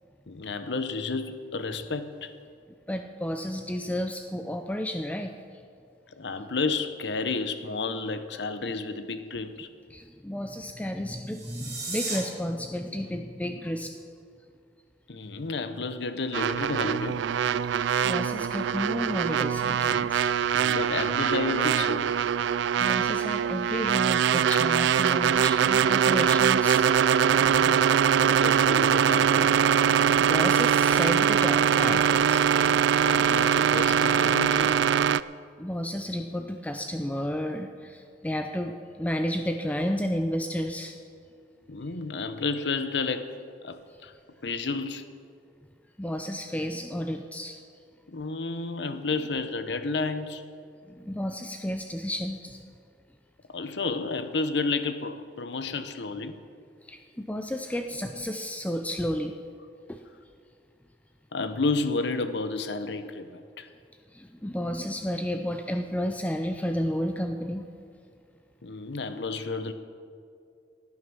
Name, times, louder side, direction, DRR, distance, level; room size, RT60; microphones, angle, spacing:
voice 1, 0.3-2.3 6.1-9.7 15.1-17.2 20.5-22.3 27.3-30.3 33.0-34.8 41.7-43.3 43.6-44.1 44.4-45.2 48.1-50.4 53.5-56.4 61.3-63.7 68.6-69.7, left 3 dB, 70° left, 10 dB, 0.8 m, -31 dB
voice 2, 2.9-5.3 9.9-14.0 17.7-20.5 22.8-27.2 29.9-32.5 35.6-41.0 46.0-47.6 50.9-52.6 56.9-59.4 59.9-60.0 64.1-67.7, equal, 10° left, 5 dB, 0.5 m, -32 dB
sound 1, 11.2-12.2, right 3 dB, 20° right, 4.3 m, -34 dB
sound 2, 16.3-35.2, right 8 dB, 80° right, 0.3 m, -23 dB
16.5 x 9.6 x 6.2 m, 2.3 s
head